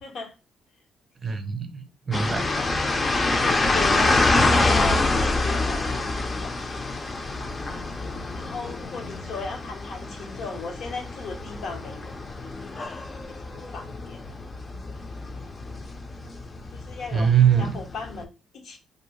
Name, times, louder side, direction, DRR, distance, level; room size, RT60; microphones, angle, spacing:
voice 1, 0.0-0.3 1.2-1.3 2.5-7.1 8.3-12.8 13.2-14.2 14.8-15.0 16.7-17.3 17.6-18.8, left 4 dB, 65° left, 0.7 m, -37 dB
voice 2, 1.2-2.5 6.3-6.4 14.7-14.8 17.1-17.7, right 8 dB, 35° right, 0.5 m, -22 dB
sound 1, 2.1-18.2, left 2 dB, 30° left, 0.4 m, -26 dB
2.5 x 2.0 x 3.0 m
cardioid pair, 90°, 0 cm